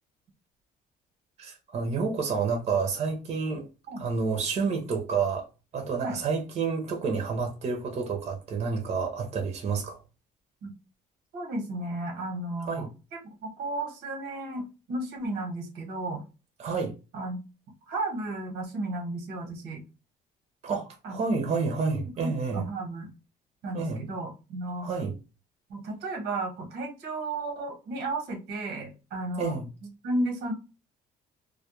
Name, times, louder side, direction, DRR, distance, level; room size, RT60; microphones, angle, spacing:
voice 1, 1.4-3.7 4.0-5.5 5.7-10.0 12.6-12.9 16.6-16.9 20.6-22.6 23.7-24.0 24.8-25.2 29.4-29.7, right 5 dB, 40° right, 0.6 m, -29 dB
voice 2, 11.3-12.9 13.4-16.2 17.1-17.4 17.9-19.8 21.0-21.5 22.2-23.1 23.6-24.9 25.7-29.6 30.0-30.5, right 2 dB, 85° right, 1.1 m, -33 dB
2.3 x 2.1 x 2.9 m
cardioid pair, 110°, 17 cm